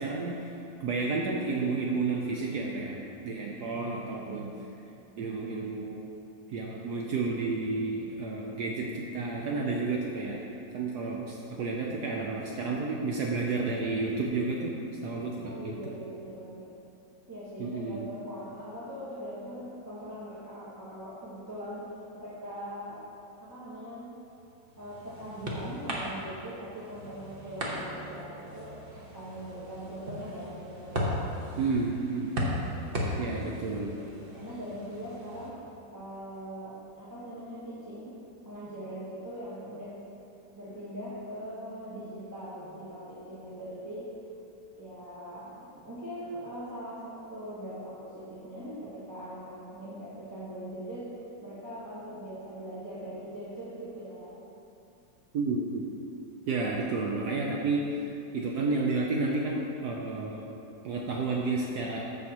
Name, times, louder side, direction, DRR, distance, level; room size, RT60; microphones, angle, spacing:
voice 1, 0.0-3.0 3.2-4.5 5.2-6.1 6.5-10.4 10.7-14.7 15.0-15.7 17.6-18.1 31.6-32.3 33.2-34.0 55.3-55.8 56.5-60.5 60.8-62.0, right 3 dB, 70° right, -1 dB, 1.2 m, -31 dB
voice 2, 15.4-16.7 17.3-23.0 23.4-24.1 24.8-31.3 32.4-33.4 33.7-35.6 35.9-38.1 38.4-40.0 40.6-44.1 44.8-54.4, equal, 10° right, -11 dB, 1.1 m, -41 dB
sound 1, 24.4-35.5, equal, 35° right, 1.2 m, -37 dB
14.0 x 6.3 x 3.0 m, 2.8 s
omnidirectional pair, 1.9 m